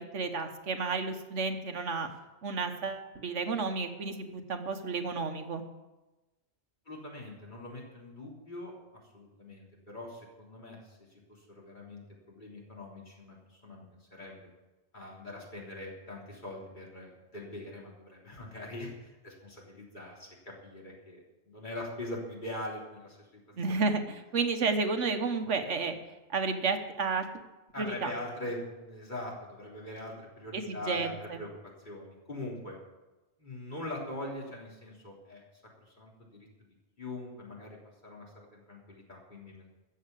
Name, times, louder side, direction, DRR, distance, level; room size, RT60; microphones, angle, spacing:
voice 1, 0.0-2.1 2.4-5.6 23.6-25.9 26.3-27.3 27.8-28.1 30.5-31.4, right 4 dB, 90° right, 6 dB, 1.6 m, -31 dB
voice 2, 6.9-13.8 14.1-14.5 14.9-23.4 27.7-31.5 31.8-32.8 33.4-35.4 35.8-36.5 37.0-37.8 38.0-39.6, left 1 dB, 40° left, -3 dB, 3.7 m, -42 dB
13.5 x 8.1 x 8.3 m, 1.1 s
omnidirectional pair, 1.2 m